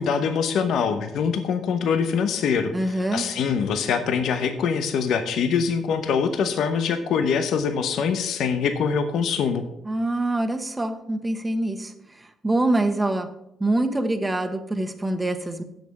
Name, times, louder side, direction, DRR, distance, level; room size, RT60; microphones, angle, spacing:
voice 1, 0.0-9.6, left 6 dB, 75° left, 8 dB, 0.9 m, -24 dB
voice 2, 2.7-3.3 9.8-13.3 13.6-15.6, right 2 dB, 15° right, 8 dB, 1.2 m, -25 dB
7.8 x 6.6 x 6.9 m, 0.83 s
cardioid pair, 90°, 0 cm